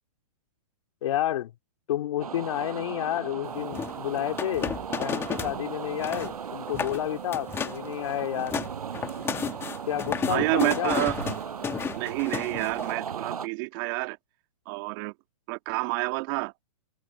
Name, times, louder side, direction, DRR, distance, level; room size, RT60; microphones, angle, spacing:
voice 1, 1.0-1.5 1.9-8.5 9.9-11.0, left 12 dB, 60° left, 2.5 m, -30 dB
sound 1, 2.2-13.5, right 7 dB, 85° right, 6.8 m, -37 dB
sound 2, 3.6-11.9, right 8 dB, 15° right, 1.4 m, -49 dB
sound 3, 3.7-5.6 5.9-6.3 6.7-7.0 7.3-7.9 8.2-12.9, left 7 dB, 15° left, 1.5 m, -32 dB
voice 2, 10.3-11.3 11.9-14.2 14.7-15.1 15.5-16.5, right 26 dB, 35° right, 1.8 m, -29 dB
hypercardioid pair, 145°, 19 cm